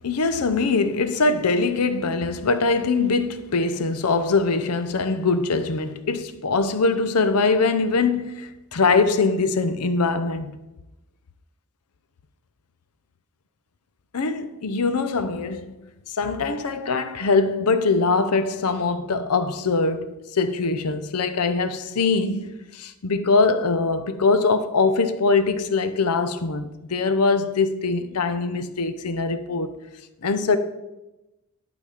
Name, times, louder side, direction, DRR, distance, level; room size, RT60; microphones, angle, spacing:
voice 1, 0.0-10.5 14.1-15.8 16.1-29.8 30.2-30.6, left 4 dB, 85° left, 0.7 m, -22 dB
11.5 x 4.1 x 5.0 m
head